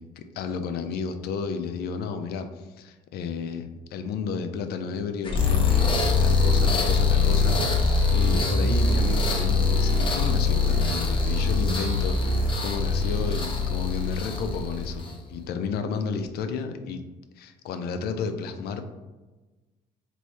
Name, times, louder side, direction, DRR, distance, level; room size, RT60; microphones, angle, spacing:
voice 1, 0.0-17.0 17.4-18.9, left 5 dB, 70° left, 8 dB, 0.4 m, -32 dB
sound 1, 5.2-15.2, left 3 dB, 30° left, 0.7 m, -23 dB
3.2 x 2.6 x 3.0 m, 1.2 s
cardioid pair, 110°, 17 cm